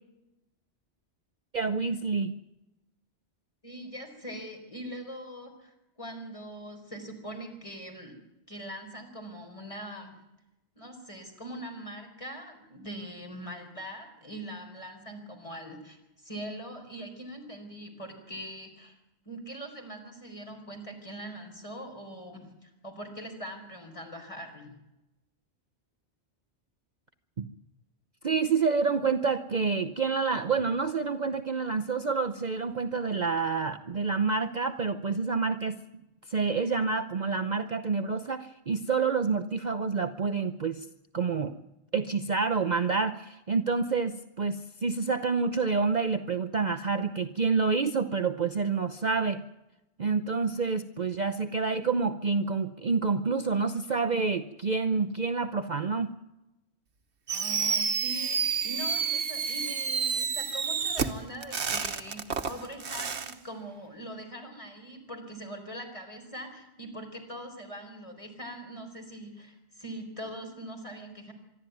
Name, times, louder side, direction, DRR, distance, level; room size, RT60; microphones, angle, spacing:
voice 1, 1.5-2.3 27.4-27.5 28.2-35.8 36.3-40.9 41.1-41.5 41.9-49.4 50.0-56.1, right 4 dB, 45° right, 7 dB, 0.9 m, -28 dB
voice 2, 3.6-8.2 8.5-10.2 10.8-19.0 19.2-24.7 57.3-71.3, equal, 30° left, 4 dB, 4.4 m, -42 dB
Fireworks, 57.3-63.3, right 6 dB, 70° right, 1.5 m, -30 dB
25.0 x 12.0 x 9.3 m, 0.94 s
omnidirectional pair, 1.2 m